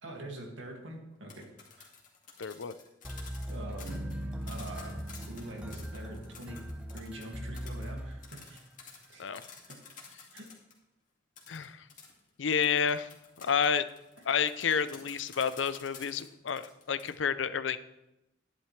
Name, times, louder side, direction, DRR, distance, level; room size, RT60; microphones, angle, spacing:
voice 1, 0.0-1.5 1.8-1.9 3.5-4.0 4.5-5.0 5.3-6.6 6.9-8.6 8.9-9.2 9.7-9.8 10.3-10.5 14.7-14.8, right 1 dB, 90° right, 1 dB, 2.3 m, -44 dB
sound 1, 1.1-10.8 11.4-17.1, left 5 dB, 45° left, 2.2 m, -51 dB
voice 2, 2.4-2.7 9.2-9.4 11.5-11.8 12.4-13.1 13.4-13.9 14.3-17.8, left 6 dB, 80° left, 14 dB, 0.6 m, -30 dB
sound 2, 3.0-8.7, equal, 5° right, 0.8 m, -40 dB
Bass guitar, 3.9-7.7, right 2 dB, 50° right, 1.6 m, -47 dB
11.5 x 10.5 x 3.3 m, 0.91 s
head